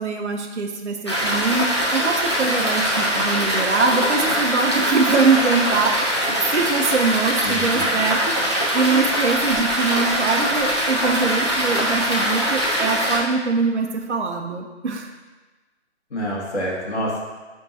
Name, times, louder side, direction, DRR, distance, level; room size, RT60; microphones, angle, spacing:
voice 1, 0.0-15.1, right 4 dB, 65° right, 2 dB, 0.8 m, -23 dB
sound 1, 1.1-13.2, equal, 25° left, 0.7 m, -22 dB
voice 2, 7.4-7.9 16.1-17.2, equal, 65° left, -4 dB, 1.9 m, -27 dB
10.0 x 3.7 x 2.8 m, 1.2 s
hypercardioid pair, 175°, 36 cm